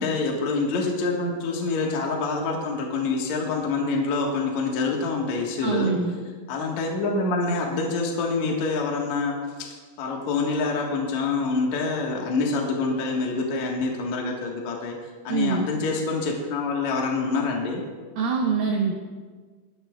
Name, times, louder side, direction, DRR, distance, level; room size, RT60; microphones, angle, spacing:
voice 1, 0.0-5.9 6.5-15.0 15.2-17.8, left 3 dB, 65° left, -1 dB, 1.8 m, -26 dB
voice 2, 5.6-6.2 15.3-15.7 18.2-18.9, right 5 dB, 75° right, 0 dB, 2.1 m, -24 dB
29.0 x 10.0 x 2.3 m, 1.4 s
omnidirectional pair, 5.5 m